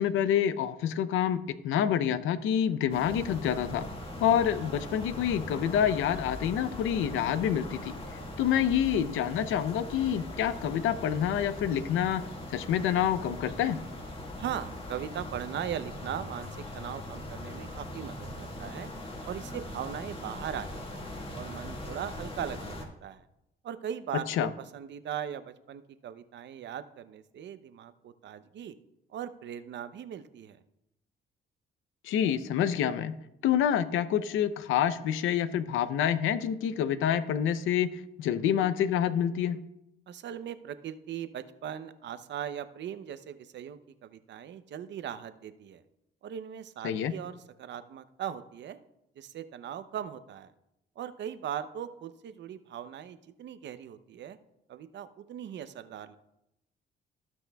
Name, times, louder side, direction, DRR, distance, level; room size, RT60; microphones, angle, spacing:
voice 1, 0.0-3.8 4.2-8.0 8.4-12.2 12.5-13.8 24.3-24.5 32.0-33.1 33.4-37.9 38.2-39.6 46.8-47.1, left 9 dB, 85° left, 12 dB, 0.6 m, -27 dB
sound 1, 2.9-22.8, left 1 dB, 30° left, 1.8 m, -41 dB
voice 2, 14.4-18.9 19.2-23.3 23.6-28.7 29.1-30.6 40.1-45.8 46.2-48.8 49.2-50.5 51.0-54.4 54.7-56.2, right 9 dB, 65° right, 11 dB, 0.7 m, -39 dB
18.0 x 6.2 x 2.3 m, 0.84 s
cardioid pair, 90°, 20 cm